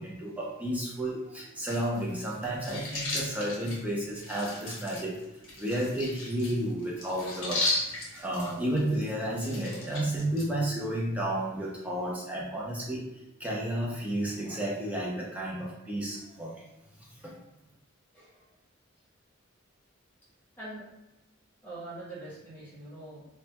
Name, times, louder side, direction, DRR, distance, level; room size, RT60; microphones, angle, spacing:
voice 1, 0.0-5.2 5.6-13.1 13.4-16.6 17.2-17.3, right 1 dB, 5° right, -4 dB, 0.4 m, -32 dB
sound 1, 1.6-10.5, left 2 dB, 65° left, 0.8 m, -36 dB
voice 2, 21.6-23.3, right 2 dB, 10° left, -8 dB, 0.7 m, -43 dB
2.1 x 2.1 x 2.8 m, 0.93 s
head